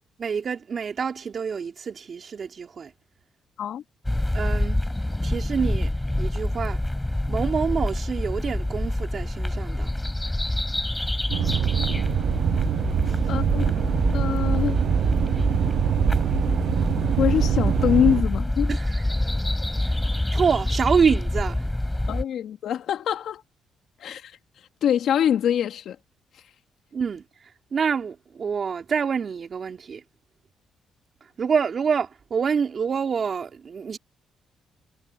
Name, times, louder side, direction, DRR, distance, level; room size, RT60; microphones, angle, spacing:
voice 1, 0.2-2.9 4.3-4.8 5.2-5.9 6.2-6.8 7.3-9.9 13.1-13.2 18.7-19.1 19.8-20.0 20.3-21.7 26.9-27.2 27.7-30.0 31.4-34.0, right 6 dB, 45° right, 3.4 m, -26 dB
sound 1, 4.0-22.2, left 1 dB, 10° left, 4.9 m, -26 dB
sound 2, 11.3-18.2, right 10 dB, 70° right, 0.5 m, -24 dB
voice 2, 13.3-13.7 14.1-14.8 17.2-18.7 22.1-23.4 24.0-24.4 24.8-26.0, left 9 dB, 70° left, 2.5 m, -24 dB
cardioid pair, 90°, 0 cm